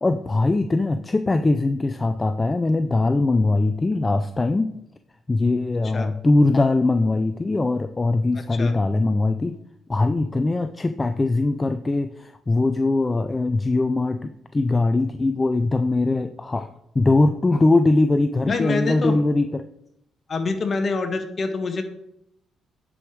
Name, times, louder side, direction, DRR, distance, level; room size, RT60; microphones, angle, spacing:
voice 1, 0.0-4.7 5.3-9.5 9.9-16.7 16.9-19.7, left 2 dB, 20° left, 9 dB, 0.4 m, -21 dB
voice 2, 8.3-8.7 18.5-19.2 20.3-21.8, left 4 dB, 40° left, 6 dB, 1.4 m, -26 dB
9.7 x 5.0 x 4.6 m, 0.78 s
cardioid pair, 90°, 0 cm